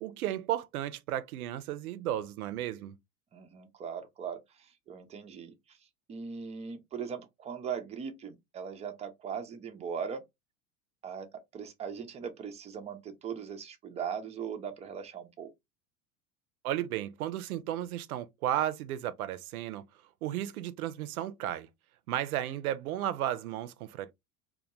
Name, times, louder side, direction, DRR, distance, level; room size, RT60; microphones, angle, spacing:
voice 1, 0.0-3.0 16.6-19.8 20.2-21.7 22.1-24.1, right 12 dB, 75° right, 0.5 m, -34 dB
voice 2, 3.3-5.8 6.1-10.2 11.0-15.5, right 7 dB, 15° right, 0.4 m, -39 dB
2.3 x 2.1 x 2.8 m
hypercardioid pair, 85°, 44 cm